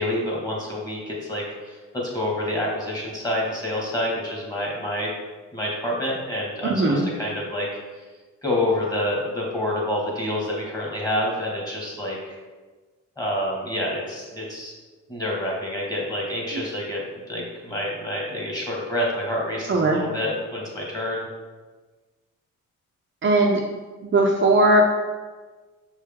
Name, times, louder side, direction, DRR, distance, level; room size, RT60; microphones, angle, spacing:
voice 1, 0.0-1.8 2.1-5.1 5.5-7.7 8.4-12.4 13.2-14.7 15.1-21.3, left 1 dB, 10° left, -3 dB, 1.8 m, -28 dB
voice 2, 6.6-7.0 16.5-16.6 19.7-20.0 23.2-23.6 24.0-24.8, right 2 dB, 40° right, -1 dB, 0.7 m, -19 dB
6.6 x 4.7 x 3.6 m, 1.3 s
cardioid pair, 135°, 31 cm